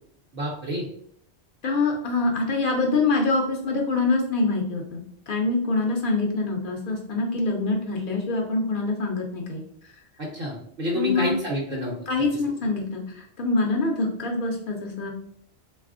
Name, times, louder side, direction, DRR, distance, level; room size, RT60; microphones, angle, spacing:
voice 1, 0.3-0.9 10.2-11.9, equal, 60° right, -2 dB, 0.8 m, -28 dB
voice 2, 1.6-9.9 10.9-11.4 12.1-15.1, left 3 dB, 60° left, 1 dB, 0.6 m, -25 dB
3.2 x 2.3 x 2.4 m, 0.68 s
omnidirectional pair, 1.1 m